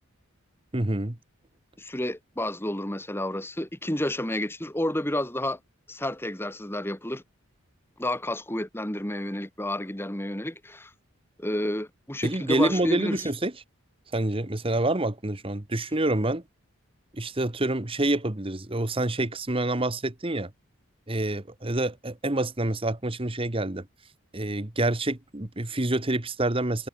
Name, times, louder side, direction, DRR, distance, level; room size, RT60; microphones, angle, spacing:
voice 1, 0.7-1.2 12.2-13.5 14.1-16.4 17.1-20.5 21.1-23.9 24.3-26.9, right 2 dB, 25° right, 1.2 m, -27 dB
voice 2, 1.8-5.6 5.9-7.2 8.0-10.9 11.4-13.3, left 1 dB, 10° left, 1.9 m, -30 dB
head